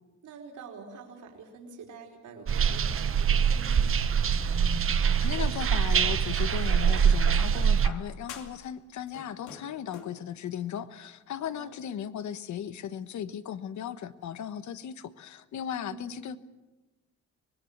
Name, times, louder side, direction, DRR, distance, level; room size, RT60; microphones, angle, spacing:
voice 1, 0.2-4.0 11.4-11.7 15.7-16.2, right 4 dB, 75° right, 1 dB, 4.7 m, -46 dB
sound 1, 2.5-7.9, right 7 dB, 45° right, 1.0 m, -24 dB
voice 2, 4.7-16.4, left 9 dB, 70° left, 12 dB, 1.3 m, -37 dB
sound 2, 5.6-6.6 7.4-8.7 9.0-10.2 11.3-11.4, left 7 dB, 90° left, 2.7 m, -46 dB
25.0 x 19.5 x 7.3 m, 1.1 s
cardioid pair, 90°, 30 cm